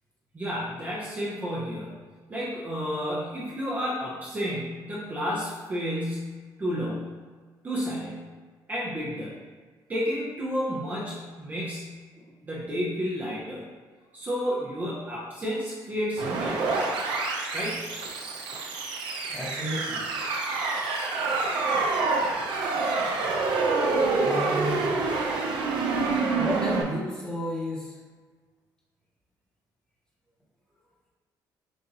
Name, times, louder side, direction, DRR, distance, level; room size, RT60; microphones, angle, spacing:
voice 1, 0.3-2.0 2.3-7.1 7.6-8.3 8.7-9.4 9.9-13.7 14.1-16.7 17.5-17.9, equal, 20° right, -6 dB, 0.7 m, -31 dB
sound 1, 16.2-26.8, right 3 dB, 85° right, 0.7 m, -27 dB
voice 2, 19.3-20.0 24.2-25.0 26.4-27.9, equal, 10° left, -6 dB, 1.1 m, -32 dB
6.5 x 2.6 x 2.9 m, 1.5 s
cardioid pair, 155°, 8 cm